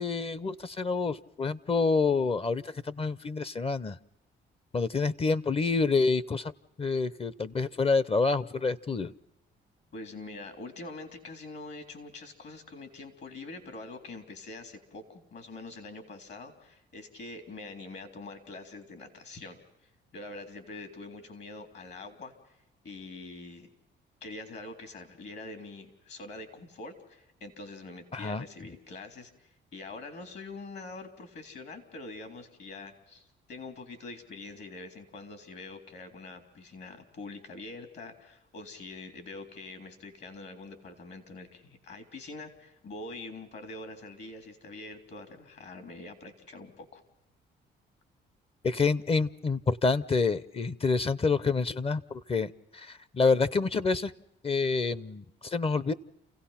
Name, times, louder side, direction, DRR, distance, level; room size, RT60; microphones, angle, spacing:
voice 1, 0.0-4.0 4.7-6.5 6.8-9.1 28.1-28.4 48.6-54.1 54.4-55.9, left 4 dB, 30° left, 19 dB, 0.7 m, -28 dB
voice 2, 9.9-19.6 20.1-22.6 22.8-23.7 24.2-47.0, left 2 dB, 60° left, 7 dB, 3.6 m, -44 dB
29.0 x 16.5 x 5.8 m, 0.86 s
cardioid pair, 90°, 20 cm